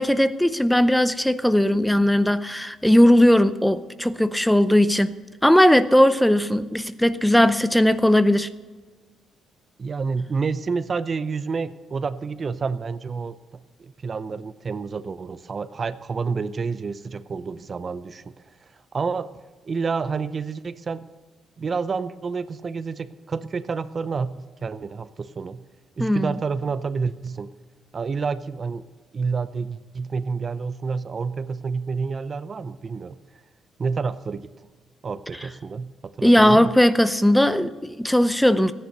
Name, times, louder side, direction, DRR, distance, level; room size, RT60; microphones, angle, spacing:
voice 1, 0.0-5.1 5.4-8.5 26.0-26.3 36.2-38.7, equal, 5° left, 0.6 m, -18 dB
voice 2, 9.8-18.2 18.9-19.3 19.6-21.0 21.6-25.6 26.0-27.5 27.9-28.9 29.1-33.2 33.8-34.5 35.0-36.7, right 5 dB, 40° right, 0.6 m, -29 dB
14.5 x 10.0 x 6.7 m
cardioid pair, 90°, 0 cm